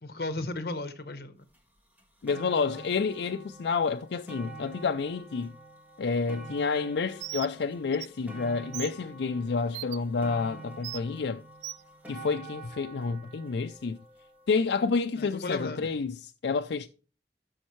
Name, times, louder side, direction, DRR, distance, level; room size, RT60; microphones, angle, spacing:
voice 1, 0.0-1.4 15.2-15.9, left 2 dB, 60° left, 1.0 m, -35 dB
sound 1, 1.5-1.6 2.0-15.2 15.9-16.0, right 2 dB, 10° right, 1.5 m, -47 dB
voice 2, 2.2-5.5 6.0-11.4 12.1-14.0 14.5-16.9, left 4 dB, 80° left, 0.4 m, -29 dB
Bird, 7.2-7.5 7.9-8.1 8.7-8.9 9.7-10.0 10.8-11.0 11.6-11.8, right 16 dB, 80° right, 0.3 m, -37 dB
13.0 x 6.4 x 3.1 m
head